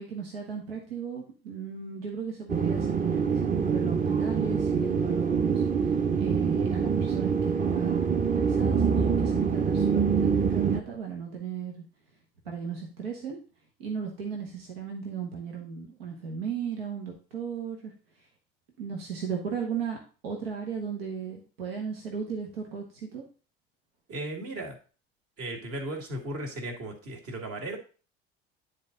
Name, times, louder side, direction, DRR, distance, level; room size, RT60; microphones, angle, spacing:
voice 1, 0.0-11.8 12.4-13.4 13.8-17.9 18.8-20.0 20.2-23.2, right 6 dB, 90° right, 1 dB, 1.4 m, -36 dB
sound 1, 2.5-10.8, right 6 dB, 25° right, 0.9 m, -25 dB
voice 2, 24.1-24.8 25.4-27.8, right 1 dB, 55° right, 2 dB, 2.3 m, -36 dB
9.6 x 4.3 x 3.9 m, 0.38 s
hypercardioid pair, 65°, 29 cm